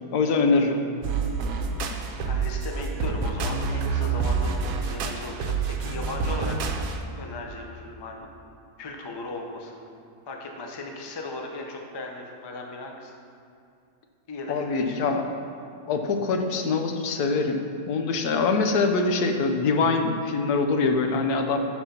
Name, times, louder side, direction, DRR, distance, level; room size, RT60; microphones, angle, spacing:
voice 1, 0.1-0.8 14.5-15.2 15.9-21.6, left 4 dB, 80° left, 5 dB, 1.2 m, -24 dB
sound 1, 1.0-7.0, right 5 dB, 70° right, 1.0 m, -28 dB
voice 2, 2.2-8.3 8.8-9.8 10.3-13.1 14.3-15.0, left 2 dB, 30° left, 1 dB, 0.5 m, -37 dB
9.0 x 4.9 x 5.7 m, 2.5 s
omnidirectional pair, 1.6 m